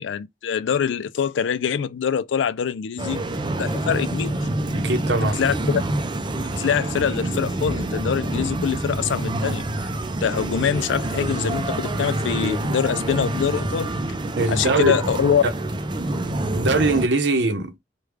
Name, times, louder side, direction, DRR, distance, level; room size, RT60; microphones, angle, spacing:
voice 1, 0.0-3.2 3.6-4.4 5.2-5.8 6.4-9.6 10.2-14.2 14.5-15.4, left 7 dB, 85° left, 0.4 m, -24 dB
sound 1, 3.0-17.1, right 1 dB, 25° right, 0.4 m, -27 dB
voice 2, 4.7-5.4 14.4-15.0 15.4-15.5 16.6-17.8, right 2 dB, 70° right, 0.7 m, -21 dB
3.2 x 2.2 x 3.4 m
head